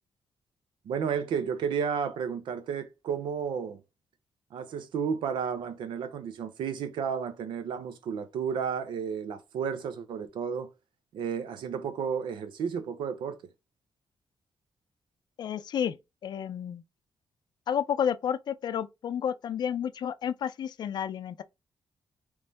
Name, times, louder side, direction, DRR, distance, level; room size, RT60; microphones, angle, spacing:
voice 1, 0.9-3.8 4.5-10.7 11.1-13.4, right 7 dB, 85° right, 0.7 m, -32 dB
voice 2, 15.4-16.0 16.2-16.8 17.7-21.4, left 8 dB, 65° left, 0.4 m, -31 dB
3.5 x 3.1 x 3.9 m
cardioid pair, 90°, 8 cm